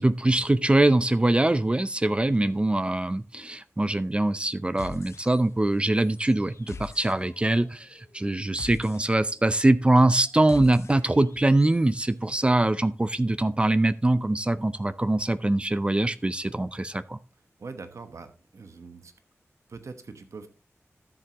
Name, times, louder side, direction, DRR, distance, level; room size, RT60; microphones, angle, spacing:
voice 1, 0.0-17.2, right 2 dB, 20° right, 0.4 m, -23 dB
sound 1, 4.8-5.7 5.9-12.0, left 4 dB, 70° left, 0.7 m, -45 dB
voice 2, 17.6-19.1 19.7-20.5, right 4 dB, 80° right, 1.1 m, -42 dB
13.0 x 7.6 x 2.9 m
wide cardioid pair, 85°, 5 cm